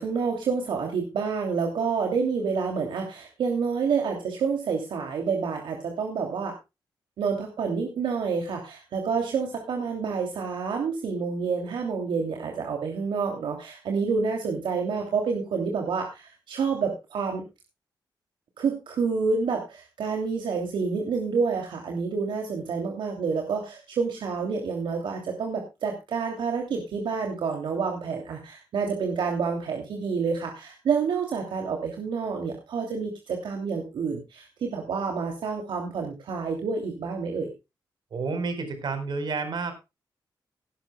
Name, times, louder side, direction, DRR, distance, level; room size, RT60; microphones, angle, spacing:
voice 1, 0.0-6.5 7.2-17.4 18.6-37.5, right 5 dB, 90° right, 2 dB, 2.9 m, -28 dB
voice 2, 38.1-39.8, right 4 dB, 65° right, 9 dB, 4.7 m, -30 dB
18.0 x 12.0 x 2.3 m, 0.26 s
wide cardioid pair, 105°, 8 cm